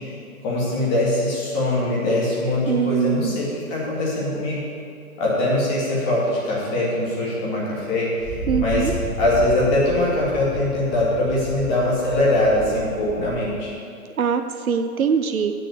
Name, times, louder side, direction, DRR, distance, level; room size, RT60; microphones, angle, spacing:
voice 1, 0.4-4.6 5.2-8.9 9.2-13.7, left 1 dB, 25° left, -6 dB, 2.9 m, -22 dB
voice 2, 2.7-3.5 8.5-8.9 14.2-15.5, right 7 dB, 65° right, 8 dB, 0.8 m, -22 dB
Wind, 8.2-13.7, right 1 dB, ahead, 2.3 m, -33 dB
8.5 x 6.6 x 8.1 m, 2.3 s
figure-of-eight pair, 130°, 44 cm